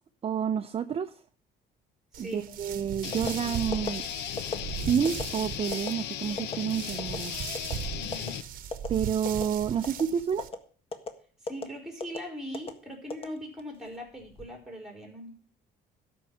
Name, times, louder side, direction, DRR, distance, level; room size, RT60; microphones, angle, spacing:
voice 1, 0.2-1.1 2.2-4.0 4.9-7.3 8.9-10.5, right 8 dB, 35° right, 9 dB, 0.7 m, -29 dB
voice 2, 2.1-2.5 8.0-8.4 11.4-15.3, equal, 5° right, 3 dB, 4.4 m, -40 dB
sound 1, 2.1-10.5, right 9 dB, 55° right, 1.1 m, -39 dB
sound 2, 3.0-8.4, left 11 dB, 85° left, 0.8 m, -36 dB
sound 3, 3.1-3.3 3.7-3.9 4.4-4.6 5.0-5.2 5.7-5.9 6.4-6.6 7.0-7.2 7.5-7.8 8.1-8.3 8.7-8.9 9.2-9.5 9.8-10.0 10.4-10.6 10.9-11.1 11.5-11.6 12.0-12.2 12.5-12.7 13.1-13.7 14.2-14.5, left 3 dB, 35° left, 1.6 m, -34 dB
12.5 x 5.5 x 7.5 m, 0.43 s
cardioid pair, 110°, 17 cm